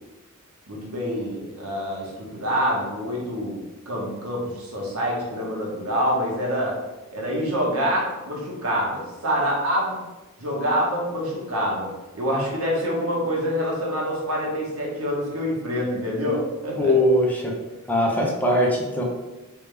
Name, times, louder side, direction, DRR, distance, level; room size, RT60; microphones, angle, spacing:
voice 1, 0.7-3.6 3.9-6.7 7.1-10.0 10.4-11.9 12.1-16.9, equal, 75° right, -3 dB, 1.1 m, -26 dB
voice 2, 16.8-17.5 17.9-19.0, left 1 dB, 10° left, -3 dB, 0.5 m, -21 dB
3.4 x 2.8 x 3.3 m, 1.1 s
head